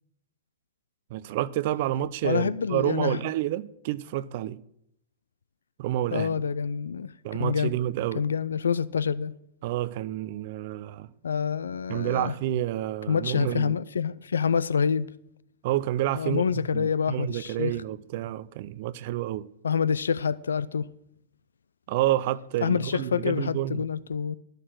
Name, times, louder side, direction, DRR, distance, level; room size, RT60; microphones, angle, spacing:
voice 1, 1.1-4.6 5.8-6.4 7.2-8.2 9.6-11.1 11.9-13.7 15.6-19.5 21.9-23.8, right 13 dB, 55° right, 0.6 m, -29 dB
voice 2, 2.2-3.2 6.1-7.7 8.2-9.3 11.2-12.3 13.1-15.1 16.1-17.7 19.6-20.9 22.6-24.4, left 6 dB, 85° left, 0.4 m, -27 dB
12.5 x 6.6 x 7.5 m
hypercardioid pair, 105°, 0 cm